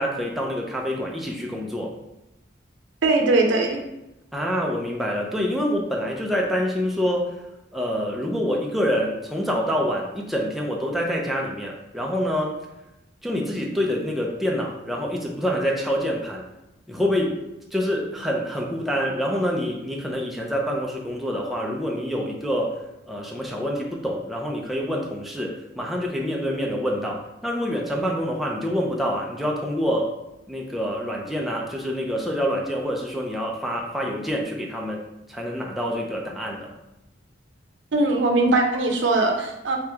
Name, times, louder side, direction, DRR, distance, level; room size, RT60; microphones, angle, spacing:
voice 1, 0.0-1.9 4.3-7.4 7.7-12.6 13.2-16.5 16.9-17.4 17.7-22.8 23.1-30.1 30.5-35.0 35.3-36.7, equal, ahead, -2 dB, 0.4 m, -26 dB
voice 2, 3.0-3.8 37.9-39.8, right 2 dB, 75° right, 2 dB, 0.6 m, -20 dB
3.5 x 3.0 x 3.4 m, 0.92 s
head